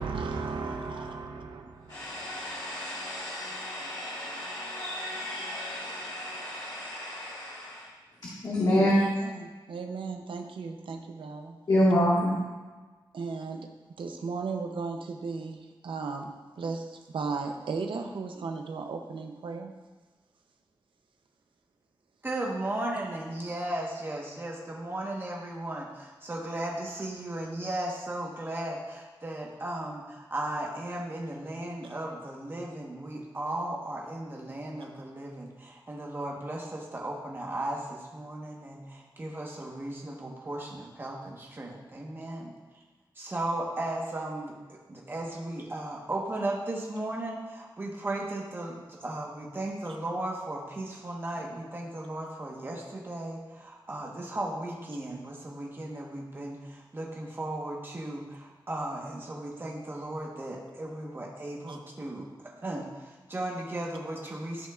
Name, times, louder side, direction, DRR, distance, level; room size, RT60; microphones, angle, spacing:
voice 1, 0.0-2.3 8.7-8.9 9.4-11.6 13.1-13.7 14.0-19.7 61.7-61.8, right 4 dB, 85° right, 4 dB, 0.7 m, -36 dB
voice 2, 1.9-7.8 8.2-8.9 11.7-12.4, left 1 dB, 60° left, -8 dB, 1.8 m, -29 dB
voice 3, 22.2-42.5 43.1-64.7, right 1 dB, 25° right, -2 dB, 1.3 m, -36 dB
13.5 x 5.4 x 2.5 m, 1.3 s
wide cardioid pair, 170°, 8 cm